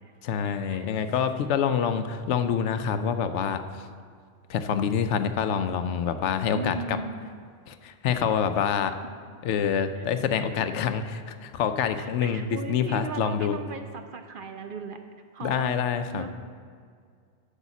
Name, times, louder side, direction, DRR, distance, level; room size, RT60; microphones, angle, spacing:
voice 1, 0.2-3.6 4.5-7.0 7.7-9.0 9.4-13.6 15.4-16.2, left 7 dB, 80° left, 10 dB, 0.9 m, -26 dB
voice 2, 6.5-7.2 9.9-10.1 10.3-10.5 12.0-15.0 15.3-15.7 16.1-16.3, right 4 dB, 60° right, 6 dB, 0.6 m, -37 dB
8.1 x 5.6 x 7.1 m, 2.1 s
omnidirectional pair, 1.2 m